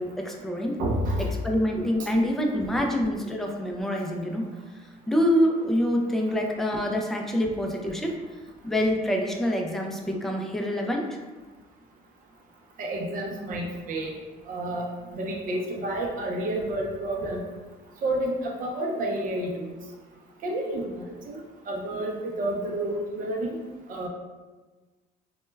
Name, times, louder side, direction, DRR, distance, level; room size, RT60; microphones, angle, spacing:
voice 1, 0.0-0.7 1.3-4.4 5.1-8.1 8.6-11.0, equal, ahead, 1 dB, 0.3 m, -26 dB
voice 2, 0.8-1.3 12.8-14.1 14.5-14.9 15.1-17.4 18.0-19.7 20.4-21.4 21.7-23.5 23.9-24.1, right 1 dB, 55° right, 0 dB, 0.5 m, -29 dB
2.2 x 2.1 x 3.1 m, 1.3 s
cardioid pair, 110°, 17 cm